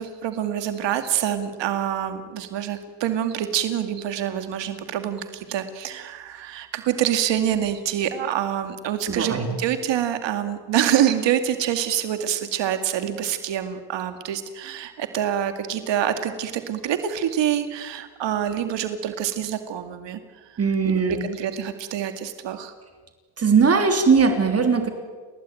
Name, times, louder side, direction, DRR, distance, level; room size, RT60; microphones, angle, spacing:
voice 1, 0.0-20.6 20.9-22.7, right 10 dB, 70° right, 8 dB, 2.3 m, -26 dB
voice 2, 9.1-9.5 20.6-21.2 23.4-24.9, right 5 dB, 30° right, 6 dB, 3.3 m, -19 dB
29.5 x 19.5 x 9.1 m, 1.5 s
cardioid pair, 120°, 45 cm